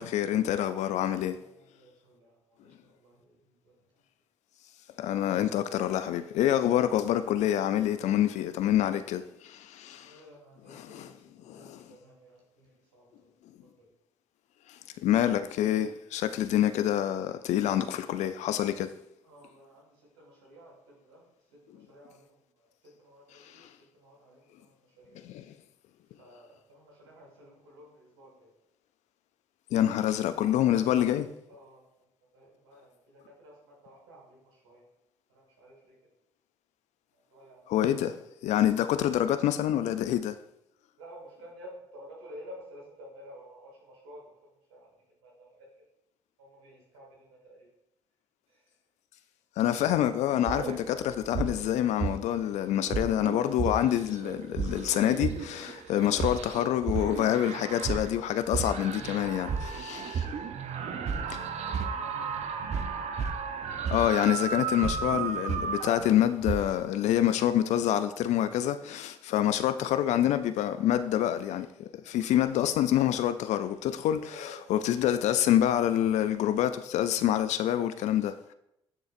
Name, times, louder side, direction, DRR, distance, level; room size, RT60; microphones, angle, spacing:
voice 1, 0.0-1.4 5.0-10.2 10.7-11.1 11.5-11.9 14.7-18.9 23.3-23.7 25.2-25.4 29.7-31.3 37.7-38.2 38.4-40.4 49.6-60.3 61.3-61.4 63.9-78.5, left 11 dB, 60° left, 0.4 m, -27 dB
voice 2, 1.3-3.8 9.8-13.3 13.8-13.9 19.2-21.2 21.7-22.7 23.0-23.7 23.9-25.2 26.2-28.5 31.2-31.8 32.3-34.8 35.3-36.0 37.1-37.8 41.0-44.3 44.7-44.9 45.2-45.7 46.4-47.7 48.5-48.6 60.9-62.6 74.1-74.6, equal, 85° right, 1.8 m, -52 dB
sound 1, 50.5-52.5 52.8-66.7, right 6 dB, 55° right, 0.7 m, -33 dB
10.0 x 3.8 x 2.5 m
hypercardioid pair, 50°, 13 cm